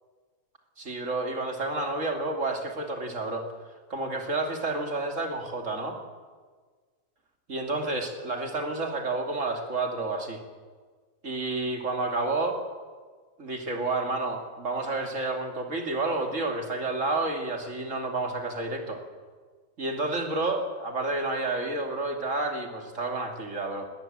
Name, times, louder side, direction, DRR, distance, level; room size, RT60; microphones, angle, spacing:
voice 1, 0.8-3.5 3.9-6.0 7.5-10.4 11.2-12.6 13.4-19.0 19.8-23.9, right 2 dB, 60° right, 3 dB, 2.9 m, -30 dB
19.5 x 18.0 x 7.6 m, 1.5 s
omnidirectional pair, 1.5 m